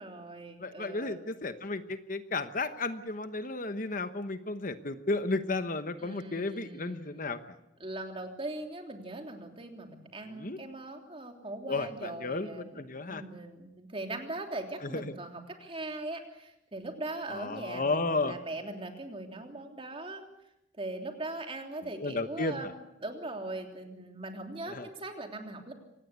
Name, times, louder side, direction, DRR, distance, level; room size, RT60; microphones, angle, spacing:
voice 1, 0.0-1.2 6.0-7.4 7.8-20.2 20.7-25.7, right 2 dB, 30° right, 3 dB, 3.3 m, -40 dB
voice 2, 0.6-7.4 10.3-10.6 11.7-13.2 14.9-15.1 17.3-18.4 22.0-22.7 24.7-24.9, left 3 dB, 45° left, 10 dB, 1.1 m, -33 dB
25.0 x 19.0 x 8.3 m, 0.86 s
head